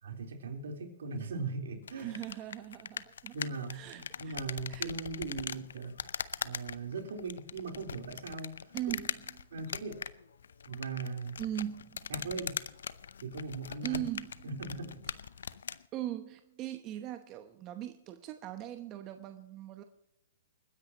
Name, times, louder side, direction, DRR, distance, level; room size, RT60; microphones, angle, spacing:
voice 1, 0.0-2.2 3.3-6.0 6.4-8.7 9.5-10.0 10.7-11.4 12.1-12.6 13.2-14.0 14.4-15.0, right 3 dB, 75° right, 2 dB, 3.9 m, -39 dB
sound 1, 1.8-15.8, left 7 dB, 80° left, 0.6 m, -41 dB
voice 2, 1.9-3.3 3.7-4.4 4.7-4.9 8.7-9.1 11.4-12.1 13.8-14.5 15.4-15.6 15.9-19.8, right 13 dB, 30° right, 7 dB, 1.0 m, -40 dB
29.0 x 9.9 x 3.0 m, 0.85 s
hypercardioid pair, 140°, 0 cm